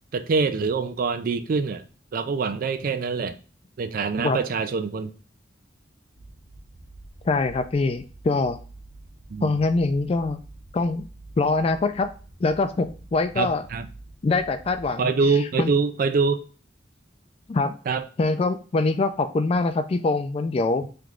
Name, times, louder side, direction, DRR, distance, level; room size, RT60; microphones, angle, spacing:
voice 1, 0.1-1.8 2.1-3.4 3.8-5.1 9.3-9.6 13.4-13.9 15.0-16.4 17.9-18.0, right 4 dB, 50° right, 0.4 m, -24 dB
sound 1, 6.1-15.0, right 2 dB, 80° right, 1.4 m, -47 dB
voice 2, 7.2-8.6 9.4-10.4 10.7-11.1 11.4-12.1 12.4-13.6 14.2-15.7 17.5-17.8 18.2-20.8, left 3 dB, 30° left, 0.3 m, -24 dB
3.4 x 3.1 x 3.7 m
head